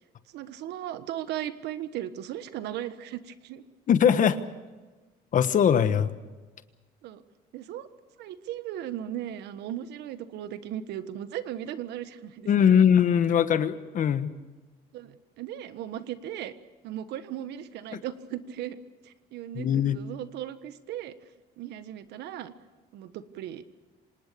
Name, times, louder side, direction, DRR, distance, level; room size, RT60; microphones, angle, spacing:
voice 1, 0.3-3.6 7.0-7.2 7.5-7.9 8.2-12.5 14.9-16.5 16.8-18.8 19.0-21.1 21.6-22.5 22.9-23.6, right 11 dB, 80° right, 12 dB, 1.4 m, -37 dB
voice 2, 3.9-4.4 5.3-6.1 12.5-14.3 19.5-20.0, left 8 dB, 50° left, 12 dB, 1.3 m, -21 dB
26.0 x 19.0 x 6.9 m, 1.2 s
cardioid pair, 110°, 17 cm